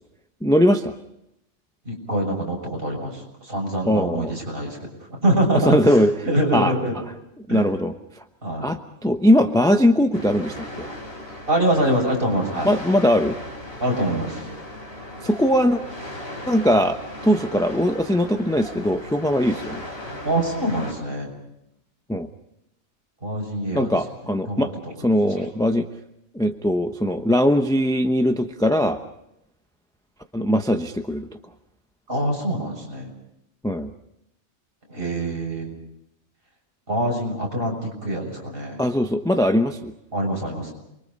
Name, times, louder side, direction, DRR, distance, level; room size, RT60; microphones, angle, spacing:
voice 1, 0.4-0.9 3.8-4.4 5.7-6.1 6.5-6.7 7.5-8.2 8.6-10.9 12.6-13.4 15.2-15.8 16.5-19.9 22.1-22.3 23.7-24.7 25.0-25.9 26.3-29.0 30.3-31.3 33.6-33.9 38.8-39.9, equal, 5° left, 6 dB, 0.8 m, -20 dB
voice 2, 1.9-6.0 6.2-6.9 7.5-7.7 8.4-8.7 11.5-12.7 13.8-14.5 20.2-21.3 23.2-24.0 24.5-24.7 25.4-25.5 32.1-33.1 34.9-35.7 36.9-38.8 40.1-40.7, right 1 dB, 45° right, 0 dB, 6.9 m, -24 dB
sound 1, 10.1-20.9, left 1 dB, 50° left, 4.9 m, -37 dB
28.5 x 23.0 x 5.4 m, 0.82 s
omnidirectional pair, 1.3 m